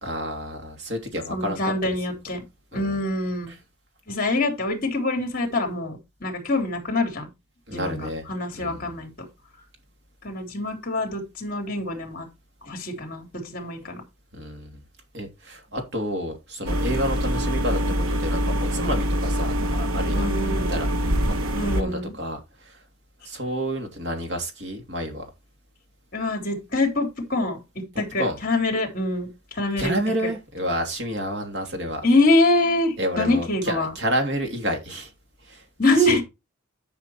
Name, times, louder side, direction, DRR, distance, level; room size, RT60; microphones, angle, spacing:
voice 1, 0.0-1.6 2.7-3.0 7.7-8.2 8.5-8.8 14.3-14.8 15.1-17.8 18.1-20.3 20.7-22.8 23.2-25.3 28.2-28.4 29.8-32.0 33.0-35.1 35.4-35.6 36.0-36.2, equal, 50° right, 3.1 m, -30 dB
voice 2, 1.3-2.4 2.7-3.6 4.1-7.3 7.7-9.1 10.2-12.3 12.6-14.0 20.1-20.9 21.5-22.1 26.1-29.9 30.2-30.3 32.0-33.9 35.8-36.2, left 2 dB, 40° left, 3.4 m, -25 dB
sound 1, 16.7-21.8, equal, 80° right, 1.2 m, -24 dB
11.0 x 6.0 x 4.5 m
head